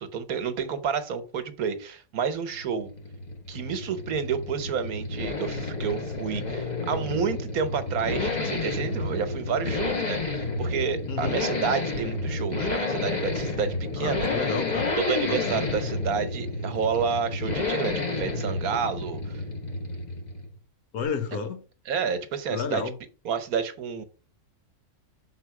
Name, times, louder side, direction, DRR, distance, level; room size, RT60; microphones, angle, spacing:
voice 1, 0.0-2.9 3.5-14.3 15.0-19.4 21.9-22.8 23.2-24.0, right 6 dB, 70° right, 1.4 m, -30 dB
sound 1, 2.5-20.6, left 3 dB, 30° left, 1.3 m, -30 dB
voice 2, 11.1-11.4 14.0-14.9 15.2-15.7 20.9-21.6 22.5-22.9, left 5 dB, 75° left, 1.5 m, -32 dB
6.5 x 4.4 x 4.7 m
omnidirectional pair, 1.6 m